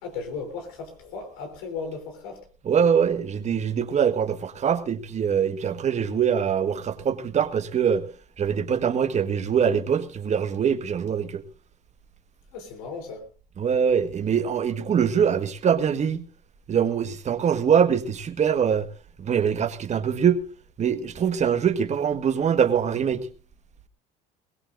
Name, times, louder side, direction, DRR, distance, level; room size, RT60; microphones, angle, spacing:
voice 1, 0.0-2.4 12.5-13.3, left 4 dB, 90° left, 3.6 m, -36 dB
voice 2, 2.6-8.0 8.4-11.4 13.6-16.2 16.7-18.9 19.2-20.4 20.8-23.3, right 7 dB, 40° right, 1.5 m, -23 dB
21.0 x 17.0 x 2.6 m
supercardioid pair, 90°, 18 cm